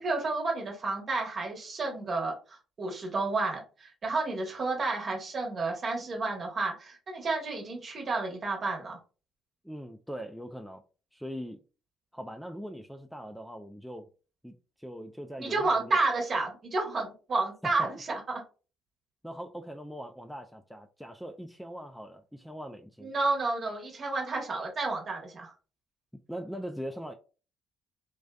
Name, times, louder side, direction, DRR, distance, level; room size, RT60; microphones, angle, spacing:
voice 1, 0.0-9.0 15.4-18.4 23.0-25.5, right 3 dB, 45° right, 1.0 m, -31 dB
voice 2, 9.6-10.8 11.1-11.6 12.1-14.1 14.4-16.0 19.2-23.1 26.3-27.1, equal, ahead, 0.3 m, -41 dB
2.4 x 2.3 x 2.2 m
hypercardioid pair, 55°, 0 cm